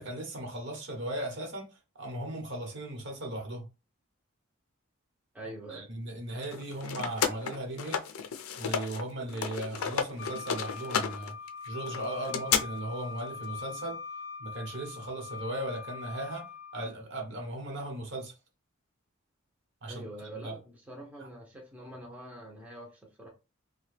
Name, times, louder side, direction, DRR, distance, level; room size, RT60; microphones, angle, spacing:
voice 1, 0.0-1.7 2.0-3.7 5.7-8.0 8.6-11.3 11.7-14.0 14.4-16.5 16.7-18.3 19.8-20.0 20.4-20.6, right 1 dB, 60° right, 1.0 m, -37 dB
voice 2, 5.3-5.9 19.9-23.3, right 1 dB, 5° right, 0.6 m, -45 dB
sound 1, 6.4-9.0 9.3-12.6, left 7 dB, 90° left, 0.4 m, -32 dB
Wind instrument woodwind instrument, 10.2-16.9, left 6 dB, 50° left, 0.6 m, -42 dB
2.8 x 2.2 x 3.2 m
head